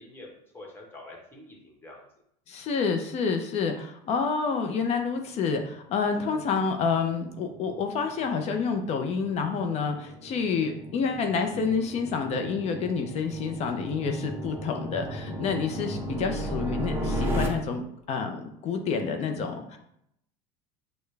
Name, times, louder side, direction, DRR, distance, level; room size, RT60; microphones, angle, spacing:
voice 1, 0.0-2.0, left 2 dB, 15° left, -2 dB, 1.3 m, -46 dB
voice 2, 2.5-19.8, left 5 dB, 45° left, 5 dB, 0.6 m, -28 dB
sound 1, 6.1-8.5, equal, 40° right, 1.1 m, -52 dB
sound 2, 6.4-17.5, equal, 15° right, 1.0 m, -35 dB
6.5 x 2.2 x 3.3 m, 0.74 s
supercardioid pair, 125°, 16 cm